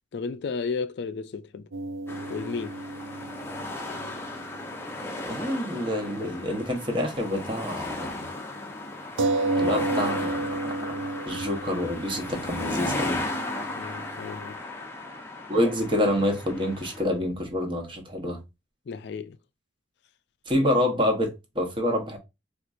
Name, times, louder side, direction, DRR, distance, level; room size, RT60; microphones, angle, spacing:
voice 1, 0.1-1.7 2.3-2.8 13.8-14.6 18.9-19.4, left 5 dB, 60° left, 0.4 m, -33 dB
sound 1, 1.7-5.6 5.8-6.0 9.2-14.4, right 2 dB, 90° right, 0.5 m, -32 dB
sound 2, 2.1-17.0, left 2 dB, 15° left, 0.6 m, -35 dB
voice 2, 5.2-8.2 9.5-10.6 10.8-10.9 11.3-13.2 15.5-18.4 20.5-22.2, left 1 dB, 25° right, 0.9 m, -27 dB
4.3 x 2.5 x 2.4 m
head